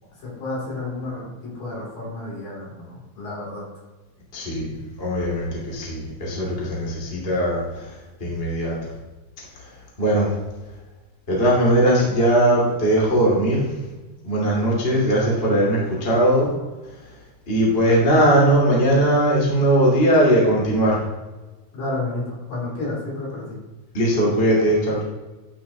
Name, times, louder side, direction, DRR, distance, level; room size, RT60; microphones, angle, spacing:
voice 1, 0.2-3.6 21.7-23.6, left 2 dB, 50° left, -5 dB, 4.5 m, -31 dB
voice 2, 4.3-4.7 5.0-7.9 8.2-8.7 10.0-10.3 11.3-13.7 14.2-16.5 17.5-21.0 23.9-25.0, right 1 dB, 25° left, -4 dB, 1.2 m, -19 dB
12.0 x 7.3 x 3.0 m, 1.2 s
omnidirectional pair, 5.6 m